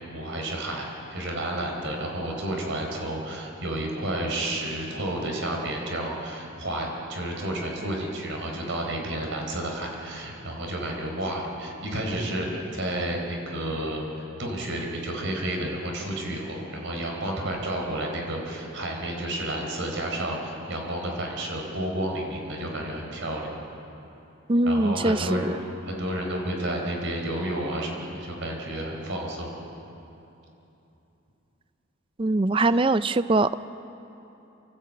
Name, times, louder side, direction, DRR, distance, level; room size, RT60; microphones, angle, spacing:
voice 1, 0.1-23.5 24.6-29.5, right 1 dB, 65° right, 1 dB, 4.4 m, -31 dB
voice 2, 24.5-25.6 32.2-33.5, right 2 dB, 25° right, 14 dB, 0.4 m, -22 dB
28.5 x 14.5 x 8.7 m, 2.9 s
head